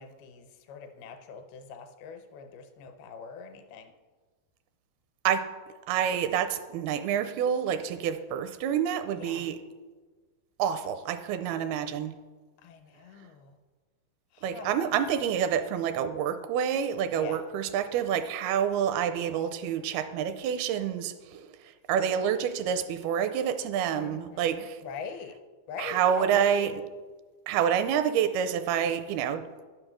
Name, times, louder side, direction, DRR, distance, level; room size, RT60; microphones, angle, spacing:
voice 1, 0.0-4.0 9.1-9.5 12.6-13.6 14.3-14.7 17.2-17.4 23.9-25.4 25.7-26.9, left 5 dB, 80° left, 7 dB, 2.6 m, -43 dB
voice 2, 5.9-9.6 10.6-12.2 14.4-24.8 25.8-26.8 27.5-29.5, right 8 dB, 85° right, 9 dB, 2.4 m, -28 dB
10.5 x 6.5 x 6.2 m, 1.3 s
omnidirectional pair, 4.5 m